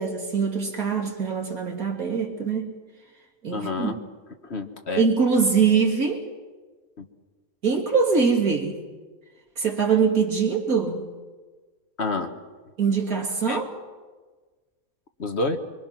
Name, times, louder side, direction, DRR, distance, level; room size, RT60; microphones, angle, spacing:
voice 1, 0.0-2.7 3.4-3.9 4.9-6.3 7.6-8.8 9.6-11.0 12.8-13.7, right 5 dB, 75° right, 1 dB, 3.4 m, -23 dB
voice 2, 3.5-4.0 4.4-5.1 7.0-7.1 12.0-12.3 13.5-13.6 15.2-15.6, left 3 dB, 50° left, 6 dB, 1.6 m, -28 dB
25.0 x 24.5 x 6.0 m, 1.4 s
omnidirectional pair, 1.5 m